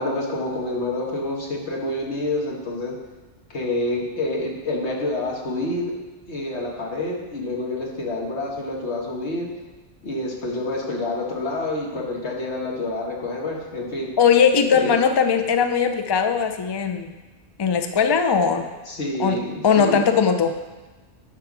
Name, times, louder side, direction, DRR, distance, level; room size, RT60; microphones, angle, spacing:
voice 1, 0.0-2.9 3.5-5.9 6.3-9.5 10.0-14.1 14.7-14.9 18.9-20.0, left 2 dB, 80° left, -1 dB, 1.8 m, -27 dB
voice 2, 14.2-17.1 17.6-18.7 19.2-20.6, left 6 dB, 35° left, 8 dB, 0.4 m, -19 dB
9.6 x 4.5 x 6.1 m, 1.2 s
omnidirectional pair, 1.1 m